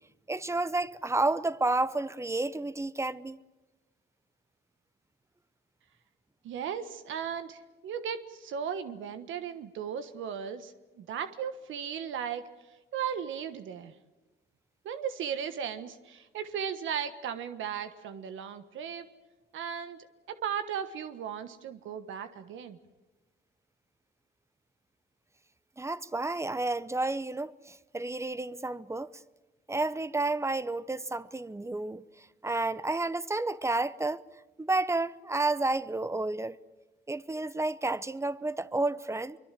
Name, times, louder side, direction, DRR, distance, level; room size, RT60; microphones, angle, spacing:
voice 1, 0.3-3.4 25.8-29.1 29.7-34.2 34.6-36.6 37.1-39.4, right 2 dB, 15° right, 0.8 m, -31 dB
voice 2, 6.4-12.5 12.9-13.9 14.8-19.1 19.5-20.0 20.3-22.8, right 8 dB, 80° right, 1.3 m, -36 dB
24.0 x 23.5 x 7.6 m
cardioid pair, 90°, 20 cm